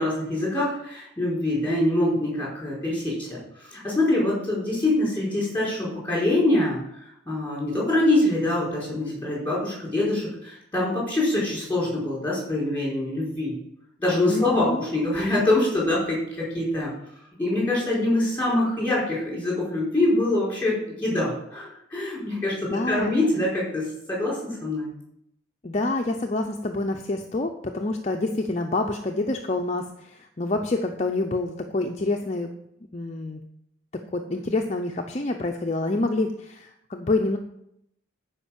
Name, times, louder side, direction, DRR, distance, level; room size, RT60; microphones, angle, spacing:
voice 1, 0.0-6.8 7.3-13.6 14.0-16.9 17.4-24.9, left 1 dB, 10° left, -5 dB, 4.7 m, -24 dB
voice 2, 14.3-14.8 22.7-23.5 25.6-32.5 32.9-33.4 34.1-37.4, left 2 dB, 35° left, 2 dB, 0.6 m, -27 dB
9.9 x 5.1 x 7.3 m, 0.76 s
head